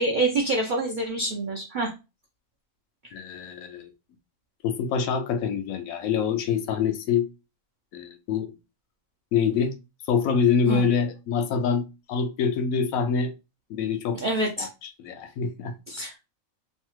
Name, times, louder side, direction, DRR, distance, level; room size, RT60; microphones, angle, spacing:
voice 1, 0.0-1.9 10.7-10.9 14.1-14.7 15.9-16.2, right 2 dB, 65° right, 0.5 m, -26 dB
voice 2, 3.1-3.9 4.6-7.3 7.9-8.5 9.3-9.7 10.1-13.3 13.7-14.2 14.6-15.7, left 6 dB, 75° left, 1.0 m, -25 dB
3.1 x 2.1 x 3.0 m
omnidirectional pair, 1.5 m